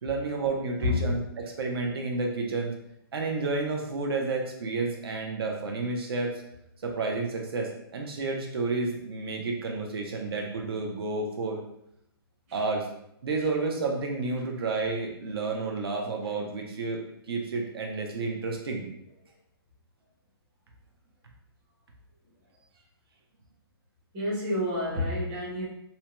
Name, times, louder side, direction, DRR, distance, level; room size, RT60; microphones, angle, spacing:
voice 1, 0.0-2.7 3.1-6.3 6.8-11.6 12.5-12.9 13.2-17.0 17.3-18.9, right 3 dB, 70° right, 1 dB, 0.6 m, -30 dB
voice 2, 24.1-25.6, left 2 dB, 20° right, -5 dB, 0.7 m, -29 dB
2.7 x 2.1 x 2.9 m, 0.76 s
hypercardioid pair, 165°, 13 cm